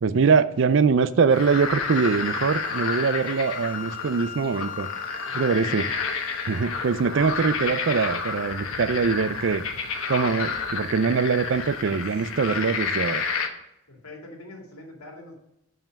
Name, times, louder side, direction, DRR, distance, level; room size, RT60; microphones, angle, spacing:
voice 1, 0.0-4.9 5.3-5.8 6.5-9.7 10.1-13.2, right 5 dB, 55° right, 0.4 m, -23 dB
sound 1, 1.3-13.5, left 5 dB, 70° left, 1.1 m, -30 dB
Wind instrument woodwind instrument, 1.9-6.7, left 7 dB, 35° left, 0.6 m, -40 dB
voice 2, 5.2-5.9 13.9-15.3, left 1 dB, 90° left, 2.5 m, -42 dB
7.2 x 5.7 x 5.2 m
head